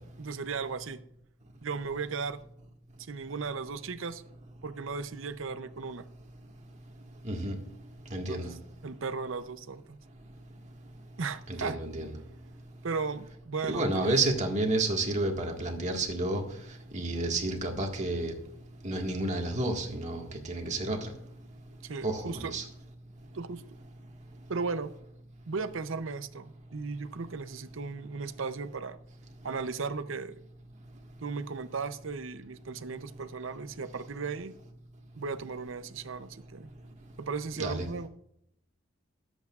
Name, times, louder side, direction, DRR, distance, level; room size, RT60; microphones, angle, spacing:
voice 1, 0.2-1.0 1.6-2.4 3.1-4.2 4.6-6.1 8.3-8.5 8.8-10.0 11.2-11.8 12.8-14.2 21.8-22.6 23.3-23.6 24.5-24.9 25.5-29.0 29.4-30.3 31.2-34.5 35.2-36.7 37.2-38.1, right 4 dB, 65° right, 12 dB, 0.6 m, -36 dB
voice 2, 7.2-7.6 8.1-8.5 11.5-12.1 13.7-16.4 16.9-18.3 18.8-21.1 22.0-22.6 37.6-37.9, right 2 dB, 35° right, 2 dB, 1.7 m, -30 dB
21.5 x 8.2 x 2.4 m, 0.74 s
head